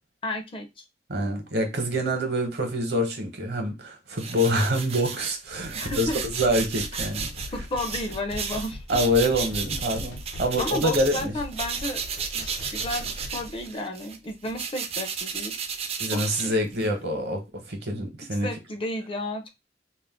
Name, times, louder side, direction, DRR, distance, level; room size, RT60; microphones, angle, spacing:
voice 1, 0.2-0.7 5.7-6.2 7.5-8.8 10.6-12.0 12.3-15.5 16.1-16.6 18.4-19.5, left 1 dB, 30° left, 0.4 m, -32 dB
voice 2, 1.1-7.3 8.9-11.3 16.0-18.5, equal, 65° right, 0.8 m, -26 dB
sound 1, 4.2-11.3 11.5-17.0, right 6 dB, 35° right, 0.4 m, -33 dB
sound 2, 5.4-13.6, left 1 dB, 80° left, 0.7 m, -40 dB
2.4 x 2.1 x 3.5 m
head